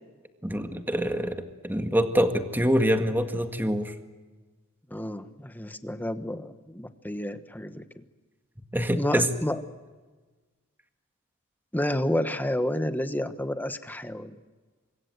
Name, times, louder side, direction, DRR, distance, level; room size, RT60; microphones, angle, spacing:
voice 1, 0.4-3.9 8.7-9.3, equal, 10° right, 6 dB, 1.9 m, -25 dB
voice 2, 4.9-7.8 9.0-9.6 11.7-14.3, left 1 dB, 10° left, 10 dB, 1.2 m, -30 dB
25.5 x 23.0 x 7.9 m, 1.3 s
head